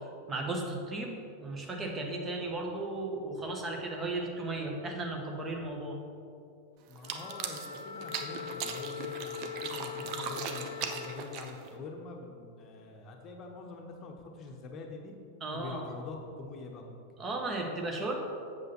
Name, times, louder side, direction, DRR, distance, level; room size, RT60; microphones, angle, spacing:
voice 1, 0.3-1.1 1.4-6.0 15.4-15.8 17.2-18.2, right 2 dB, 20° right, 1 dB, 1.3 m, -35 dB
voice 2, 6.9-15.1 15.5-17.0, left 3 dB, 30° left, 2 dB, 1.0 m, -45 dB
sound 1, 6.9-11.8, right 7 dB, 40° right, 0.7 m, -39 dB
Wind instrument woodwind instrument, 7.0-11.3, left 9 dB, 65° left, 0.5 m, -42 dB
8.1 x 6.9 x 4.2 m, 2.5 s
figure-of-eight pair, 90°, 0 cm